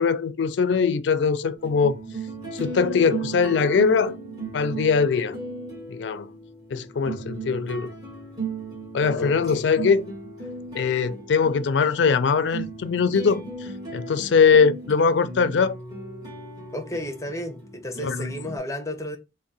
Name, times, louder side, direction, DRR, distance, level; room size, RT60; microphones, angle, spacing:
voice 1, 0.0-2.0 2.5-4.2 4.5-5.4 5.9-6.3 6.7-7.9 8.9-10.1 10.7-15.7 18.0-18.3, left 5 dB, 75° left, 0.4 m, -21 dB
sound 1, 1.6-18.6, right 3 dB, 20° right, 1.5 m, -36 dB
voice 2, 9.1-9.7 16.7-19.2, left 1 dB, 15° left, 0.6 m, -33 dB
3.5 x 2.1 x 4.0 m
head